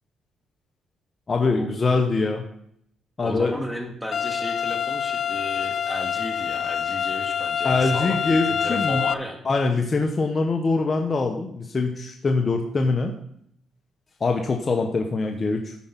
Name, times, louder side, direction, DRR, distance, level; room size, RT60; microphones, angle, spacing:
voice 1, 1.3-2.4 3.2-3.7 7.6-9.0 9.4-13.1 14.2-15.8, left 3 dB, 35° left, 3 dB, 1.1 m, -23 dB
voice 2, 3.2-9.4, equal, ahead, 3 dB, 2.2 m, -34 dB
sound 1, 4.1-9.1, left 8 dB, 55° left, 0.5 m, -26 dB
13.0 x 5.1 x 5.9 m, 0.70 s
cardioid pair, 90°, 0 cm